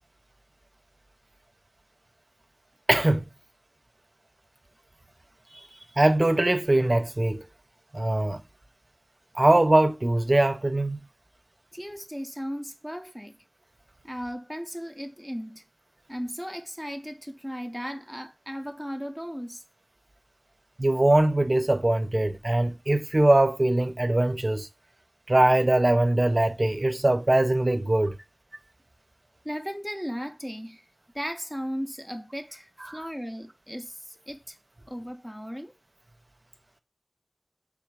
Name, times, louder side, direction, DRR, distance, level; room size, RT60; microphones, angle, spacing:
voice 1, 2.9-3.2 5.5-5.6 6.0-7.4 7.9-8.4 9.3-11.0 20.8-24.7 25.3-28.2 32.9-33.0, right 1 dB, 50° right, 0.5 m, -22 dB
voice 2, 11.7-13.4 14.0-15.6 16.1-19.6 29.4-30.8 31.1-34.6 34.9-35.7, equal, 5° left, 0.5 m, -36 dB
3.5 x 2.4 x 4.5 m
wide cardioid pair, 45°, 0 cm